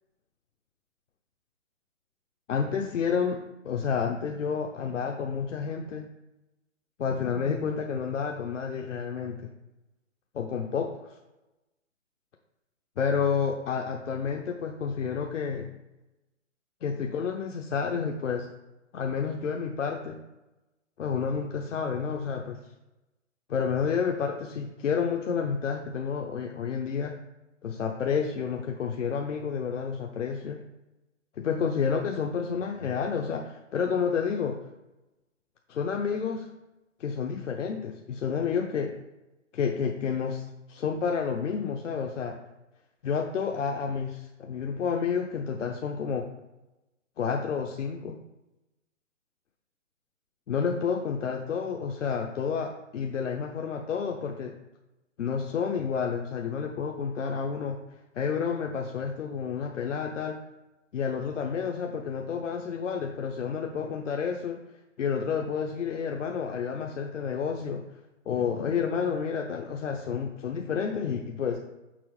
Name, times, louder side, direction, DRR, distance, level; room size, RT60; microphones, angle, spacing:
voice 1, 2.5-6.1 7.0-9.5 10.3-10.9 13.0-15.7 16.8-18.5 18.9-20.2 21.0-22.6 23.5-27.1 27.6-30.6 31.4-34.6 35.7-36.5 37.0-38.9 39.5-42.4 43.0-46.3 47.2-48.2 50.5-54.6 55.2-57.8 58.1-60.4 60.9-64.6 65.0-67.8 68.3-71.6, left 6 dB, 70° left, 2 dB, 0.7 m, -30 dB
6.1 x 3.8 x 4.7 m, 0.99 s
hypercardioid pair, 150°, 38 cm